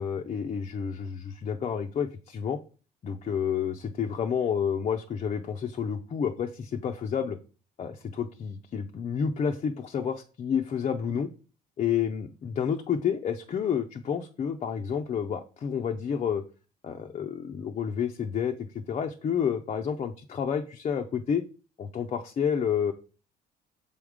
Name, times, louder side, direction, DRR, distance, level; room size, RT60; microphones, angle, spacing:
voice 1, 0.0-2.6 3.0-7.4 7.8-11.3 11.8-16.4 16.8-21.4 21.8-22.9, left 7 dB, 40° left, 4 dB, 0.5 m, -30 dB
6.9 x 3.6 x 4.8 m, 0.38 s
cardioid pair, 110°, 17 cm